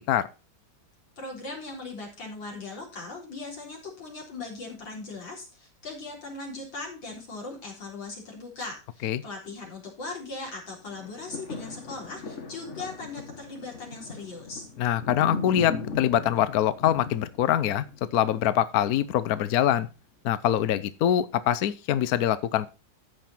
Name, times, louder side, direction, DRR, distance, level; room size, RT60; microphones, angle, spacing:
voice 1, 1.2-14.7, left 3 dB, 85° left, -1 dB, 4.7 m, -39 dB
sound 1, 10.9-19.2 19.7-19.8, left 4 dB, 40° left, 1.6 m, -38 dB
voice 2, 14.8-17.8 18.1-19.9 20.2-22.7, left 11 dB, 65° left, 15 dB, 1.0 m, -24 dB
14.0 x 5.7 x 4.3 m, 0.31 s
omnidirectional pair, 2.0 m